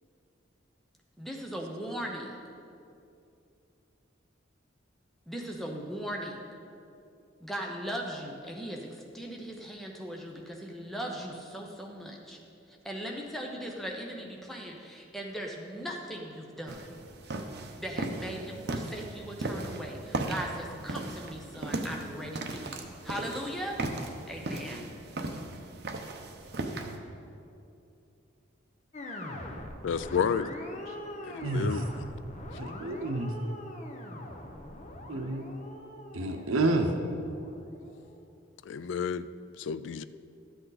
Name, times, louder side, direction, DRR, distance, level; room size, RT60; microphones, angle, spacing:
voice 1, 1.2-2.3 5.3-6.4 7.4-12.4 12.8-17.0 17.8-23.8 24.3-24.9, equal, ahead, 0 dB, 0.8 m, -38 dB
sound 1, 16.7-27.0, right 2 dB, 55° right, 0.8 m, -37 dB
blender-synth, 28.9-38.2, left 1 dB, 35° left, 0.8 m, -43 dB
voice 2, 29.8-30.5 31.3-31.8 38.7-39.3 39.6-40.0, left 7 dB, 65° left, 14 dB, 0.3 m, -30 dB
voice 3, 31.4-31.8 32.6-33.3 35.1-35.5 36.1-36.9, right 2 dB, 85° right, 4 dB, 0.7 m, -29 dB
12.5 x 7.8 x 4.1 m, 2.6 s
head